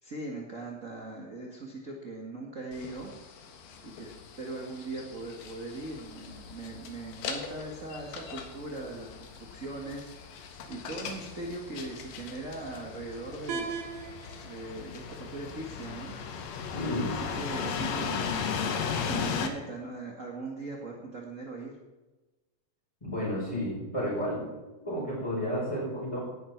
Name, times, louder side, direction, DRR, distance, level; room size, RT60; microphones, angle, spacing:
voice 1, 0.0-3.1 3.8-4.1 4.4-13.7 14.4-16.2 16.9-21.7, right 2 dB, 40° right, -1 dB, 1.0 m, -40 dB
sound 1, 2.7-16.9, left 5 dB, 90° left, 3.6 m, -46 dB
sound 2, 5.8-19.5, left 6 dB, 65° left, 1.8 m, -36 dB
sound 3, 13.5-19.5, right 5 dB, 70° right, 3.5 m, -44 dB
voice 2, 16.7-17.1 23.0-24.4 24.8-26.2, equal, 10° left, -9 dB, 5.6 m, -31 dB
18.5 x 11.0 x 4.6 m, 1.2 s
omnidirectional pair, 4.3 m